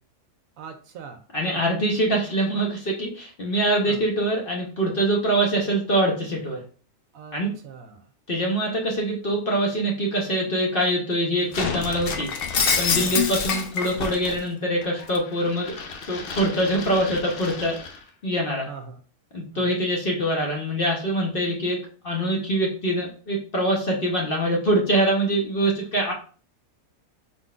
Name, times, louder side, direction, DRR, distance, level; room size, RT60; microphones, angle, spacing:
voice 1, 0.6-1.6 3.8-4.0 7.1-8.0 12.9-13.2 18.7-19.0 19.5-19.7, right 6 dB, 70° right, 5 dB, 1.0 m, -41 dB
voice 2, 1.3-6.6 7.3-7.5 8.3-12.3 12.8-15.8 16.1-17.8 18.2-18.7 19.3-21.8 22.0-26.1, right 1 dB, 40° left, -1 dB, 1.0 m, -24 dB
Shatter, 11.5-14.4 14.8-18.0, left 5 dB, 60° left, 0.6 m, -28 dB
4.2 x 3.9 x 2.4 m, 0.39 s
omnidirectional pair, 1.6 m